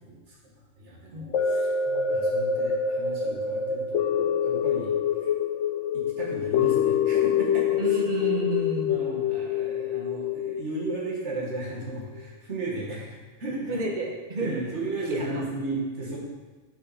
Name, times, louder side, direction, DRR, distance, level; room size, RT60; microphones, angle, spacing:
voice 1, 0.0-0.4 0.8-1.7 2.1-4.9 5.9-8.0 8.8-13.8 14.4-16.2, right 2 dB, 55° right, -4 dB, 2.0 m, -35 dB
sound 1, 1.3-11.7 12.2-12.3, left 7 dB, 70° left, 0.9 m, -26 dB
voice 2, 1.9-2.3 7.8-9.0 13.7-14.6 15.0-15.4, right 2 dB, 35° right, 1 dB, 1.1 m, -31 dB
9.1 x 5.1 x 4.2 m, 1.3 s
omnidirectional pair, 1.4 m